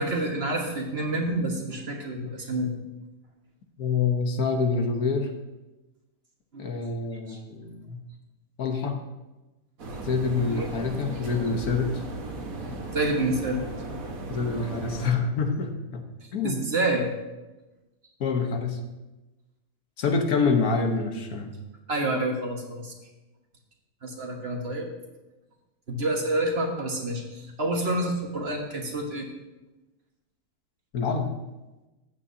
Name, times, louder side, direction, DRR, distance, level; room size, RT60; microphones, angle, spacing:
voice 1, 0.0-2.7 6.5-6.7 7.3-7.4 10.5-10.7 12.9-13.6 16.4-17.1 21.9-22.9 24.0-24.9 25.9-29.3, right 1 dB, 45° right, 1 dB, 1.6 m, -28 dB
voice 2, 3.8-5.3 6.6-8.0 8.6-9.0 10.0-12.0 14.3-16.0 16.3-16.6 18.2-18.8 20.0-21.6 30.9-31.3, left 4 dB, 80° left, 5 dB, 1.5 m, -26 dB
sound 1, 9.8-15.1, right 2 dB, 65° right, 1.8 m, -36 dB
14.5 x 8.6 x 2.7 m, 1.1 s
omnidirectional pair, 1.6 m